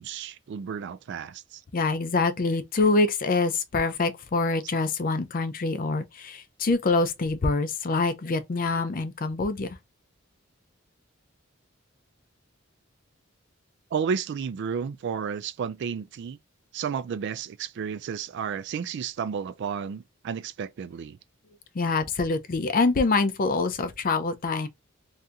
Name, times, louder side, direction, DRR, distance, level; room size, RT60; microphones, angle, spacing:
voice 1, 0.0-1.6 13.9-16.4 16.7-21.2, right 7 dB, 55° right, 0.3 m, -32 dB
voice 2, 1.7-9.7 21.7-24.7, left 3 dB, 40° left, 0.5 m, -25 dB
2.7 x 2.5 x 3.4 m
head